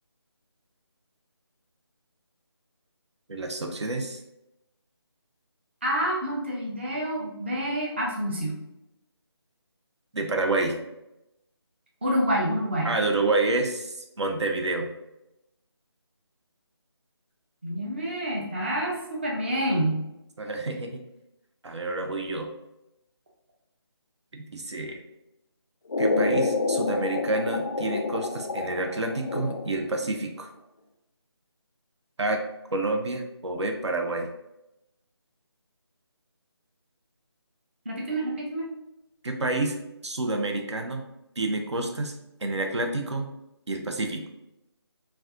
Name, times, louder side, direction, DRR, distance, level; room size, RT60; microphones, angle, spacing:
voice 1, 3.3-4.2 10.1-10.8 12.8-14.9 20.4-21.0 21.6-22.5 24.3-25.0 26.0-30.5 32.2-32.4 32.7-34.3 39.2-39.8 40.0-41.0 41.4-42.1 42.4-43.3 43.7-44.3, right 2 dB, 85° right, 3 dB, 0.7 m, -28 dB
voice 2, 5.8-8.6 12.0-13.0 17.6-20.1 37.9-38.7, equal, 25° right, -2 dB, 0.4 m, -28 dB
sound 1, 25.9-29.9, left 3 dB, 45° left, 0.3 m, -28 dB
4.1 x 2.3 x 2.4 m, 0.88 s
figure-of-eight pair, 170°, 14 cm